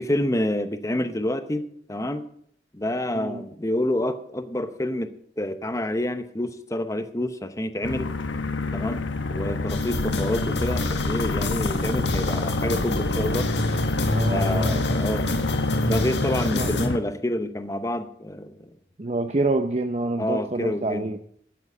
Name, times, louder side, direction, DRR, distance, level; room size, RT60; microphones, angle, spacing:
voice 1, 0.0-1.6 1.9-2.2 2.7-5.1 5.4-8.1 8.7-9.0 9.3-13.5 14.2-15.3 15.8-18.7 20.2-21.1, left 1 dB, 15° left, 10 dB, 0.9 m, -28 dB
sound 1, 7.8-17.0, left 2 dB, 85° left, 1.0 m, -27 dB
sound 2, 9.7-16.9, left 1 dB, 70° left, 1.9 m, -28 dB
voice 2, 14.1-14.9 16.5-16.7 19.0-21.2, right 2 dB, 35° right, 7 dB, 0.6 m, -27 dB
12.5 x 7.7 x 8.4 m, 0.64 s
head